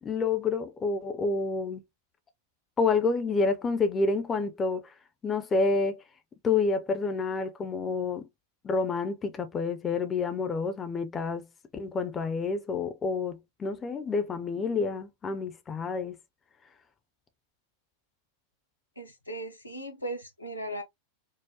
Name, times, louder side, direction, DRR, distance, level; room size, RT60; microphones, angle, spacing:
voice 1, 0.0-1.8 2.8-4.9 5.2-6.0 6.4-8.3 8.6-11.5 11.7-16.2, left 4 dB, 20° left, 0.6 m, -28 dB
voice 2, 19.0-20.8, right 1 dB, 85° left, 0.9 m, -37 dB
4.7 x 2.0 x 2.7 m
figure-of-eight pair, 90°, 0 cm